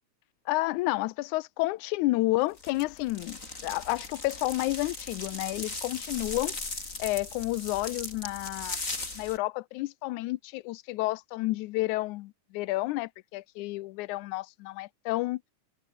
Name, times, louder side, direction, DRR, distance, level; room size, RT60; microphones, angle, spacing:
voice 1, 0.5-6.6 7.0-8.8 9.2-15.4, left 19 dB, 90° left, 2.1 m, -30 dB
sound 1, 2.6-9.4, left 3 dB, 25° left, 4.5 m, -38 dB
omnidirectional pair, 3.3 m